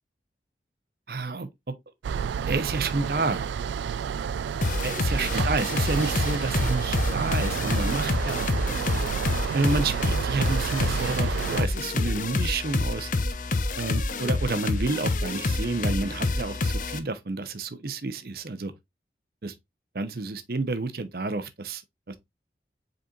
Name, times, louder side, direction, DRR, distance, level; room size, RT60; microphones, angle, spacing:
voice 1, 1.1-1.5 2.5-3.5 4.8-9.0 9.5-13.1 13.8-18.7 19.4-19.5 19.9-21.8 22.1-22.2, right 3 dB, 55° right, 0.7 m, -30 dB
sound 1, 2.0-11.7, right 7 dB, 85° right, 0.3 m, -30 dB
sound 2, 4.6-17.0, left 2 dB, 45° left, 0.6 m, -28 dB
5.2 x 4.2 x 2.4 m
head